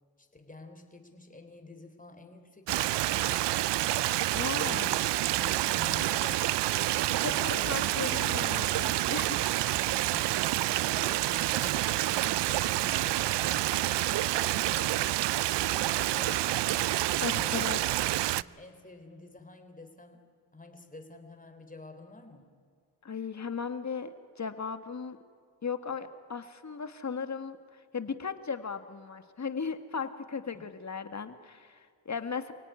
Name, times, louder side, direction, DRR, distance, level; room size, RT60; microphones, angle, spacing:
voice 1, 0.2-3.6 4.6-5.0 5.4-6.6 7.2-8.6 10.1-10.4 10.9-16.9 17.4-18.0 18.4-20.2 20.5-22.5 30.5-30.6, left 2 dB, 20° left, 6 dB, 3.7 m, -49 dB
Stream, 2.7-18.4, right 15 dB, 75° right, 0.6 m, -28 dB
voice 2, 4.3-4.9 7.2-9.5 17.2-17.8 23.0-25.2 25.6-32.5, left 5 dB, 40° left, 9 dB, 1.9 m, -36 dB
28.5 x 17.5 x 9.7 m, 2.1 s
cardioid pair, 65°, 42 cm